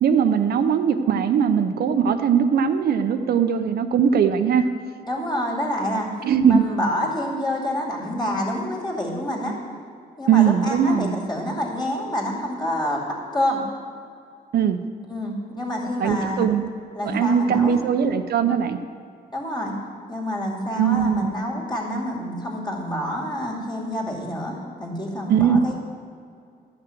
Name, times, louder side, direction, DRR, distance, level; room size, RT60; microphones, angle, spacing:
voice 1, 0.0-4.7 6.2-6.7 10.3-11.2 14.5-14.8 16.0-16.7 17.0-18.8 20.8-21.3 25.3-25.6, right 7 dB, 75° right, 8 dB, 0.6 m, -20 dB
voice 2, 5.1-6.1 6.5-9.6 10.2-13.0 13.3-13.6 15.1-16.5 16.9-17.8 19.3-19.8 20.1-25.7, equal, 25° left, -2 dB, 2.4 m, -27 dB
12.5 x 5.9 x 7.8 m, 2.3 s
cardioid pair, 120°, 16 cm